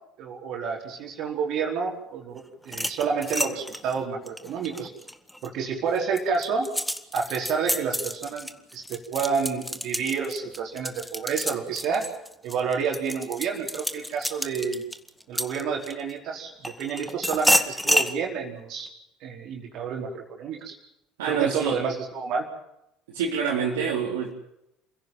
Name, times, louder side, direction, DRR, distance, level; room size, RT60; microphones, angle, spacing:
voice 1, 0.2-4.9 5.4-6.7 7.1-12.1 12.4-14.8 15.3-18.9 19.2-20.7 21.2-22.5, right 6 dB, 55° right, 1 dB, 4.7 m, -29 dB
sound 1, 2.6-5.5 6.0-16.1 16.6-18.1, equal, ahead, 1.8 m, -29 dB
voice 2, 21.2-21.8 23.1-24.3, right 6 dB, 70° right, -4 dB, 4.1 m, -26 dB
29.0 x 16.5 x 7.4 m, 0.84 s
figure-of-eight pair, 60°, 0 cm